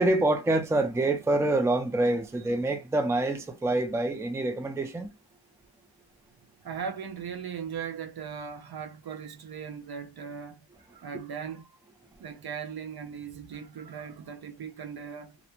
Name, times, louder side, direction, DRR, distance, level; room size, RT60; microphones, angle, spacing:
voice 1, 0.0-5.1, right 2 dB, 5° right, 0.4 m, -26 dB
voice 2, 6.6-11.7 12.2-15.4, right 7 dB, 55° right, 0.6 m, -38 dB
2.5 x 2.1 x 2.9 m
wide cardioid pair, 80°, 46 cm